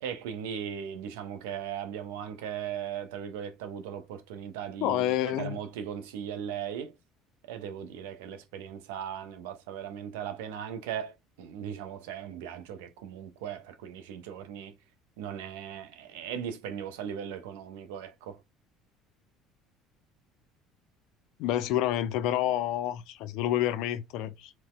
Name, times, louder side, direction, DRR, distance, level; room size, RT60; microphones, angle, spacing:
voice 1, 0.0-6.9 7.5-14.7 15.2-18.4, right 8 dB, 65° right, 0.4 m, -38 dB
voice 2, 4.8-5.6 21.4-24.5, left 12 dB, 55° left, 0.4 m, -28 dB
3.9 x 2.1 x 2.2 m
figure-of-eight pair, 60°, 0 cm